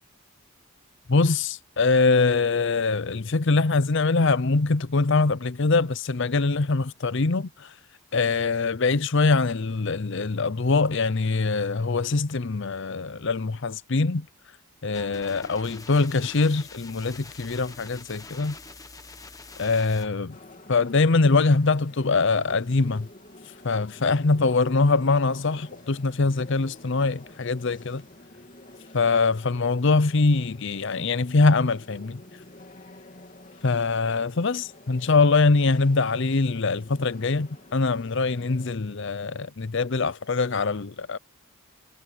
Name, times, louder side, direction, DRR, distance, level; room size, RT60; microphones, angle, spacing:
voice 1, 1.1-7.7 8.1-14.3 14.8-18.5 19.6-20.4 20.7-23.1 23.6-28.0 28.9-32.2 33.6-41.2, left 3 dB, 55° left, 0.7 m, -23 dB
sound 1, 14.9-20.1, left 3 dB, 15° left, 1.1 m, -45 dB
sound 2, 20.3-38.8, left 1 dB, 35° left, 3.2 m, -49 dB
head